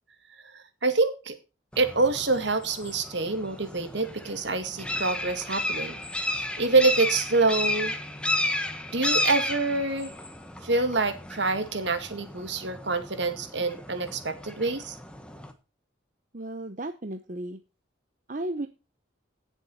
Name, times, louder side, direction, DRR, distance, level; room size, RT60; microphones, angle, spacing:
voice 1, 0.5-1.4 1.8-6.0 6.4-7.9 8.9-10.1 10.6-15.0, right 3 dB, 65° right, 9 dB, 2.1 m, -26 dB
sound 1, 1.7-15.5, left 1 dB, 5° left, 1.3 m, -33 dB
voice 2, 16.3-17.6 18.3-18.7, right 1 dB, 40° right, 8 dB, 0.8 m, -34 dB
16.5 x 7.3 x 4.2 m, 0.29 s
head